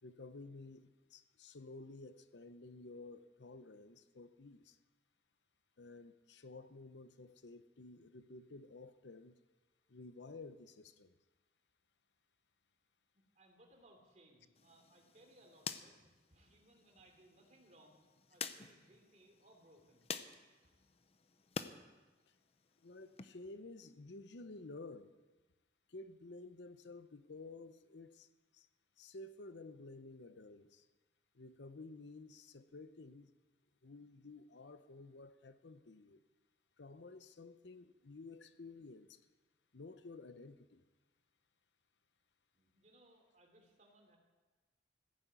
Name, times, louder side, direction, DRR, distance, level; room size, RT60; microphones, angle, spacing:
voice 1, 0.0-4.8 5.8-9.4 9.9-11.2 22.8-25.1 25.9-28.3 28.5-28.7 29.0-30.9 31.3-33.3 33.8-36.2 36.8-39.2 39.7-40.8, left 3 dB, 75° left, 11 dB, 0.8 m, -53 dB
voice 2, 13.1-18.0 18.3-20.1 20.5-20.8 42.5-44.2, right 1 dB, 40° right, 2 dB, 3.0 m, -66 dB
sound 1, 14.6-21.8 22.1-23.2, left 6 dB, 35° left, 0.6 m, -49 dB
15.5 x 9.8 x 8.1 m, 1.2 s
head